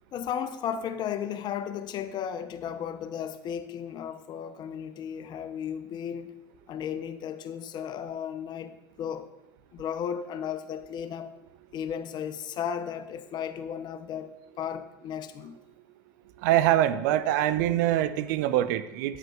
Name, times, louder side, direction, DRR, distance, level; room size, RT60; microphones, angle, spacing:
voice 1, 0.1-6.3 6.7-9.3 9.7-11.3 11.7-15.6, left 8 dB, 40° left, 0.5 m, -35 dB
voice 2, 16.4-19.2, right 13 dB, 65° right, 0.4 m, -24 dB
8.9 x 6.6 x 2.3 m
hypercardioid pair, 80°, 11 cm